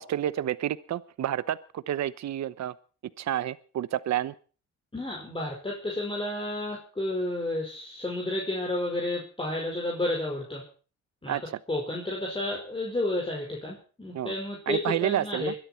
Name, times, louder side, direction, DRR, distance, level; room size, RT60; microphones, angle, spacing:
voice 1, 0.0-2.7 3.2-4.3 11.3-11.6 14.1-14.3 14.7-15.5, right 11 dB, 65° right, 17 dB, 1.0 m, -29 dB
voice 2, 4.9-10.6 11.2-11.4 11.7-15.5, left 1 dB, 15° left, -1 dB, 5.2 m, -31 dB
22.0 x 12.5 x 4.5 m, 0.40 s
cardioid pair, 90°, 30 cm